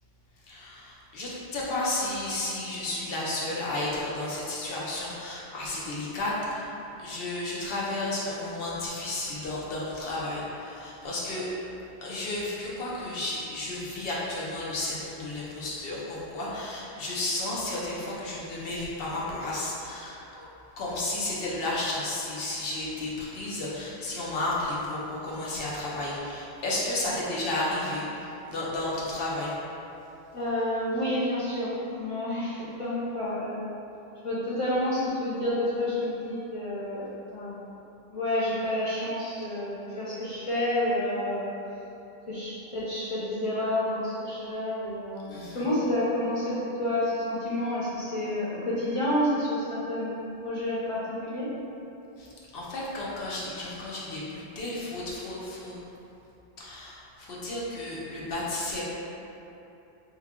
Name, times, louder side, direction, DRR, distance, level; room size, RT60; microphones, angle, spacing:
voice 1, 0.5-6.7 7.0-11.5 12.0-20.5 20.8-29.5 45.3-45.7 52.2-55.8 56.6-58.8, left 2 dB, 70° left, -6 dB, 0.9 m, -32 dB
voice 2, 30.3-33.6 34.2-37.8 38.1-41.5 42.3-50.2 50.4-51.5, left 1 dB, 40° left, -10 dB, 0.5 m, -29 dB
3.1 x 2.3 x 3.5 m, 2.9 s
omnidirectional pair, 1.0 m